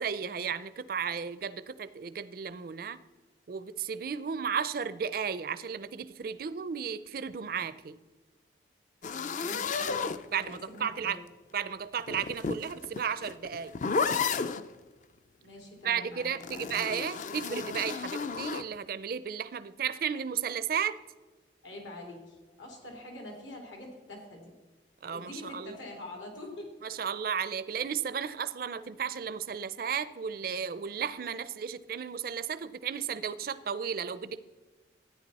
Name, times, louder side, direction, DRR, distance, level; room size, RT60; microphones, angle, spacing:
voice 1, 0.0-3.0 3.5-8.0 10.3-11.2 11.5-13.7 15.8-20.9 25.0-25.8 26.8-34.4, right 7 dB, 50° right, 14 dB, 0.4 m, -34 dB
sound 1, 9.0-10.8 12.0-14.7 16.4-18.7, left 5 dB, 40° left, 0.4 m, -33 dB
voice 2, 9.4-10.0 10.3-11.2 15.4-16.7 21.6-24.5 25.1-26.7, left 1 dB, 80° left, 1 dB, 3.0 m, -45 dB
13.5 x 9.7 x 4.1 m, 1.2 s
head